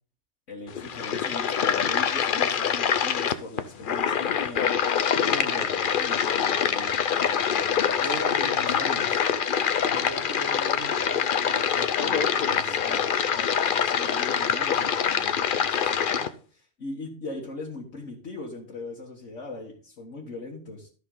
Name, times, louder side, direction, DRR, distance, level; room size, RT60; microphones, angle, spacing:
voice 1, 0.5-4.8 5.3-8.2 8.5-9.2 12.4-20.9, left 2 dB, 80° left, -3 dB, 1.9 m, -40 dB
sound 1, 0.7-16.3, left 7 dB, 50° left, 0.7 m, -25 dB
voice 2, 8.0-9.1 9.8-13.1, right 3 dB, 65° right, 5 dB, 1.7 m, -40 dB
13.0 x 5.9 x 3.8 m, 0.40 s
omnidirectional pair, 1.2 m